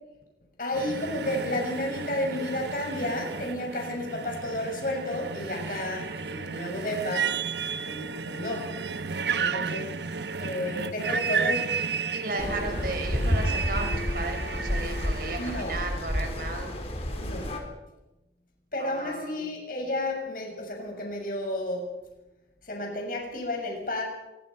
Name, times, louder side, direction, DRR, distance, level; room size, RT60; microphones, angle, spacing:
voice 1, 0.6-7.4 7.8-8.8 9.3-9.9 10.4-11.7 15.4-15.8 17.1-17.5 18.7-22.0 22.6-24.0, left 1 dB, 50° left, 1 dB, 6.8 m, -32 dB
sound 1, 0.7-15.6, right 5 dB, 80° right, 1.1 m, -33 dB
voice 2, 9.4-9.7 12.1-16.8 18.8-19.4, right 2 dB, 55° right, 4 dB, 5.4 m, -35 dB
sound 2, 12.4-17.6, equal, 35° left, 4.0 m, -30 dB
25.5 x 23.0 x 5.7 m, 1.0 s
head